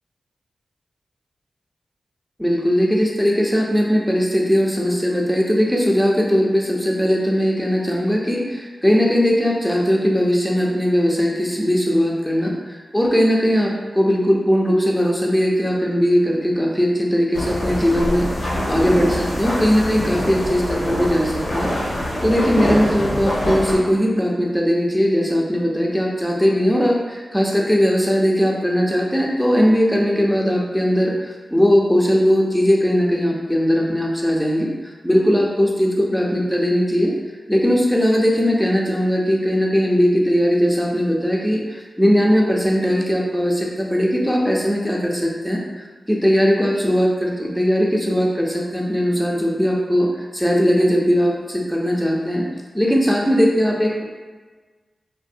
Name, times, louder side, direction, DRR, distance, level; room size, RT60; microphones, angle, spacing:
voice 1, 2.4-21.7 22.2-34.7 35.0-37.1 37.5-45.6 46.1-52.5 52.7-54.0, equal, ahead, -2 dB, 0.6 m, -19 dB
sound 1, 17.3-23.8, equal, 80° left, 0.7 m, -24 dB
2.6 x 2.5 x 2.6 m, 1.3 s
cardioid pair, 40°, 0 cm